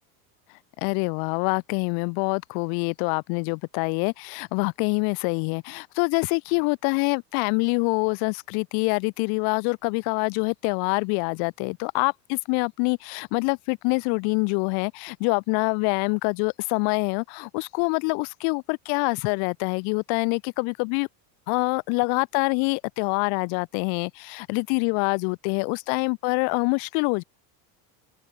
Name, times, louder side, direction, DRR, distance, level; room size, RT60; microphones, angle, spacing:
voice 1, 0.8-21.1 21.5-27.2, left 38 dB, 50° left, 0.6 m, -25 dB
open air
supercardioid pair, 140°, 49 cm